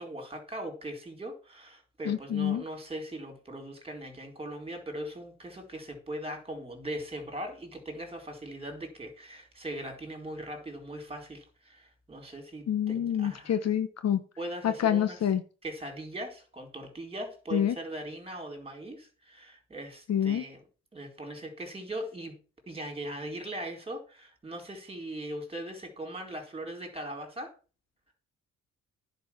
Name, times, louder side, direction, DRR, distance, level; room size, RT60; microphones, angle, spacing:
voice 1, 0.0-13.5 14.4-15.2 15.6-20.6 20.9-22.4 22.7-27.5, right 1 dB, 20° right, 3 dB, 4.2 m, -40 dB
voice 2, 2.0-2.6 12.7-14.2 14.6-15.4 17.5-17.7 20.1-20.4, left 9 dB, 60° left, 11 dB, 1.2 m, -27 dB
10.5 x 5.5 x 7.2 m, 0.36 s
cardioid pair, 90°, 30 cm